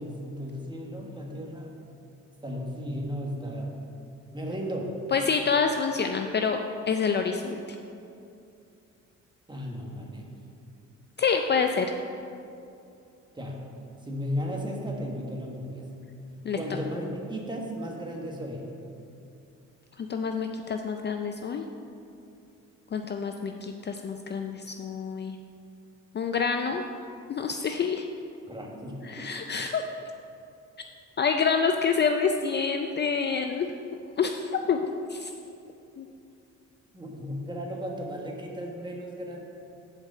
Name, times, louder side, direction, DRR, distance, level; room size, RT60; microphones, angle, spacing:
voice 1, 0.0-1.8 2.4-3.8 4.3-5.0 9.5-10.3 13.3-13.7 14.0-15.9 16.5-18.7 28.5-29.3 36.9-39.4, equal, 15° right, 0 dB, 1.4 m, -35 dB
voice 2, 5.1-6.6 6.9-7.8 11.2-11.9 16.4-16.6 20.0-21.6 22.9-25.4 26.1-26.8 27.3-28.1 29.0-29.8 31.2-33.7 34.2-34.8 35.1-35.3 36.0-36.1, left 5 dB, 35° left, 5 dB, 0.4 m, -27 dB
7.4 x 4.9 x 6.5 m, 2.6 s
cardioid pair, 90°, 30 cm